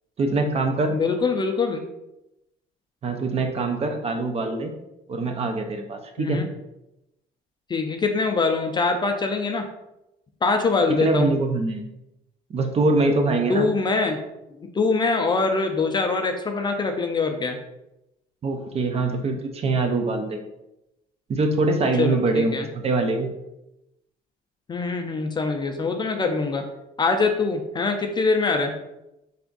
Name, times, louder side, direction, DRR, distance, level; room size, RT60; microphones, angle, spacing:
voice 1, 0.2-0.9 3.0-4.7 5.1-6.4 10.9-11.8 12.5-13.7 18.4-20.4 21.3-23.3, right 3 dB, 35° right, 5 dB, 0.5 m, -23 dB
voice 2, 0.9-1.8 6.2-6.5 7.7-9.7 10.4-11.3 13.5-14.2 14.6-17.6 22.0-22.7 24.7-26.6 27.0-28.7, left 4 dB, 25° left, 5 dB, 0.4 m, -23 dB
3.4 x 2.5 x 3.8 m, 0.90 s
cardioid pair, 110°, 17 cm